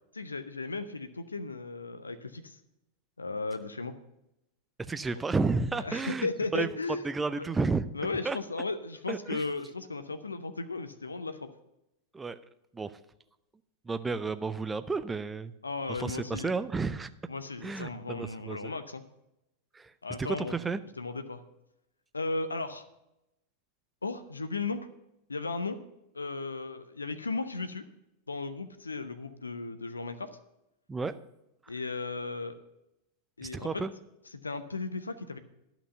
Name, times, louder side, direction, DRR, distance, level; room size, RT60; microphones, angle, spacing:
voice 1, 0.1-2.6 3.2-3.9 5.8-7.5 7.9-11.5 15.6-16.5 17.3-19.0 20.0-20.5 21.0-21.4 22.1-22.8 24.0-24.9 25.3-25.8 26.1-27.9 28.3-30.3 31.7-32.6 33.4-33.8 34.3-35.4, left 3 dB, 80° left, 10 dB, 0.6 m, -35 dB
voice 2, 4.8-6.7 7.0-7.9 8.2-8.4 9.1-9.4 12.1-12.4 12.7-13.0 13.8-15.5 15.9-17.1 17.6-18.7 19.7-19.9 20.2-20.8 30.9-31.1 33.4-33.9, right 4 dB, 15° right, 13 dB, 0.5 m, -32 dB
11.0 x 6.0 x 6.6 m, 0.89 s
figure-of-eight pair, 90°, 0 cm